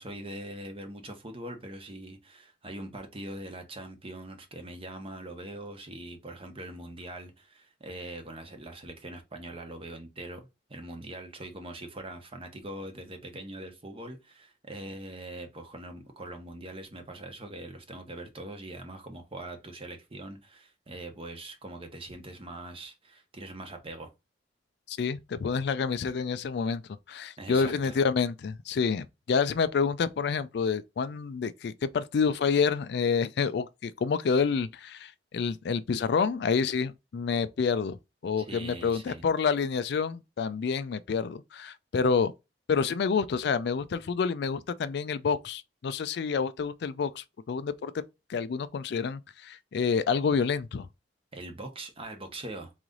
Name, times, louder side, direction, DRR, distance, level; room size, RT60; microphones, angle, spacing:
voice 1, 0.0-24.1 27.4-28.0 38.4-39.2 51.3-52.7, right 1 dB, 30° right, 1.0 m, -42 dB
voice 2, 24.9-26.8 27.1-38.0 38.2-42.3 42.7-47.9 48.3-50.9, left 5 dB, 65° left, 0.4 m, -28 dB
3.9 x 3.1 x 3.7 m
head